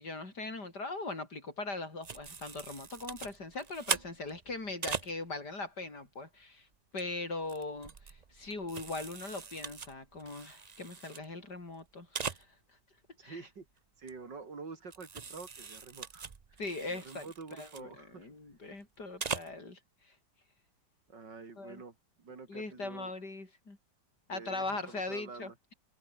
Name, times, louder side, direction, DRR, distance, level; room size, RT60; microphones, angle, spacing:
voice 1, 0.0-6.7 6.9-12.6 13.2-13.4 16.6-20.2 21.6-21.8 22.5-23.8 24.3-25.7, left 3 dB, 65° left, 5.7 m, -40 dB
sound 1, 2.0-5.1 6.7-7.0 7.4-11.2 11.5-11.6 11.8-11.9 12.1-12.4 14.1-14.2 14.9-17.8 19.0-19.5, right 5 dB, 40° right, 0.6 m, -41 dB
voice 2, 13.2-13.7 14.0-16.6 16.9-18.3 21.1-23.1 24.3-25.5, right 4 dB, 75° right, 3.8 m, -47 dB
omnidirectional pair, 1.9 m